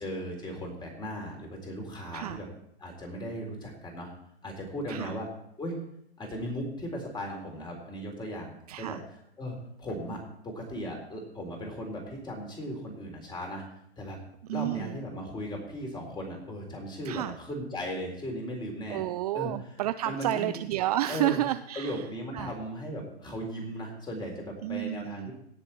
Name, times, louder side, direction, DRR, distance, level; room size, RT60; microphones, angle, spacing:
voice 1, 0.0-2.5 2.8-4.1 4.4-5.3 5.6-5.7 6.2-9.0 9.4-13.6 14.0-14.2 14.5-19.1 19.3-19.5 20.0-20.5 21.1-21.4 21.8-25.3, equal, 15° left, 1 dB, 3.8 m, -37 dB
voice 2, 8.7-9.0 14.5-15.0 17.0-17.4 18.9-22.1 22.3-22.5 24.6-25.3, right 14 dB, 40° right, 12 dB, 0.4 m, -31 dB
17.5 x 6.8 x 4.4 m, 0.74 s
hypercardioid pair, 115°, 32 cm